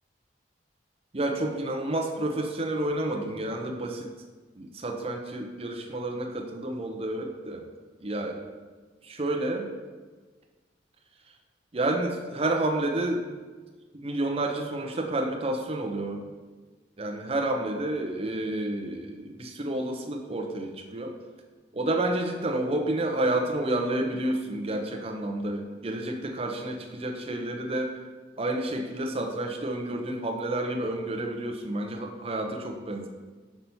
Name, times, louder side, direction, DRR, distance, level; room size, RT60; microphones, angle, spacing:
voice 1, 1.1-4.1 4.6-7.7 8.0-8.5 9.0-9.7 11.7-13.3 13.9-16.2 17.0-21.2 21.7-28.0 28.4-33.1, right 1 dB, 35° right, 3 dB, 0.7 m, -30 dB
5.9 x 5.5 x 4.4 m, 1.4 s
head